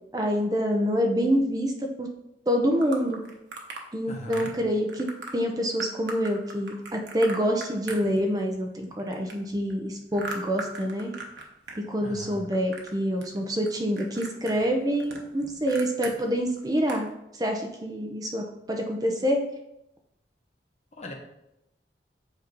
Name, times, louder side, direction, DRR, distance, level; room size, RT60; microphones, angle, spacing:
voice 1, 0.1-2.1 2.5-3.2 3.9-11.1 11.9-17.1 17.4-19.4, equal, 20° right, 2 dB, 0.6 m, -26 dB
sound 1, 2.8-3.9 4.3-4.6 4.9-5.3 5.8-8.6 8.8-11.8 12.0-12.9 13.2-13.7 14.0-16.1 16.5-16.6 16.9-17.1, right 3 dB, 80° right, 1.1 m, -39 dB
voice 2, 4.1-4.5 12.0-12.5 21.0-21.1, equal, 40° left, 1 dB, 1.0 m, -39 dB
8.0 x 2.8 x 5.2 m, 0.86 s
head